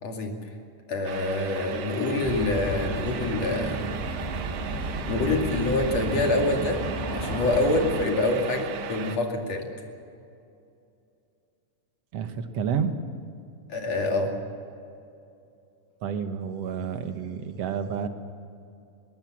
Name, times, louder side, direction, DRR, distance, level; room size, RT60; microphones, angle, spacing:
voice 1, 0.0-0.4 0.9-3.8 5.1-6.8 7.1-9.7 13.7-14.3, left 2 dB, 60° left, 2 dB, 3.4 m, -26 dB
sound 1, 1.0-9.2, right 8 dB, 85° right, 2.6 m, -37 dB
sound 2, 2.2-8.0, right 1 dB, 15° right, 2.8 m, -32 dB
voice 2, 12.1-13.0 16.0-18.1, right 7 dB, 65° right, 8 dB, 2.3 m, -30 dB
20.5 x 19.5 x 7.6 m, 2.6 s
omnidirectional pair, 3.3 m